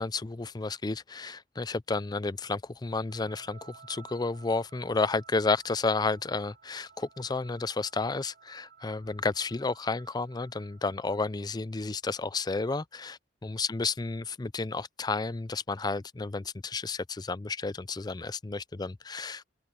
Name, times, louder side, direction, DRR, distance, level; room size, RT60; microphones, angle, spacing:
voice 1, 0.0-19.4, left 3 dB, 20° left, 0.5 m, -31 dB
sound 1, 3.1-11.2, right 6 dB, 60° right, 4.7 m, -55 dB
open air
head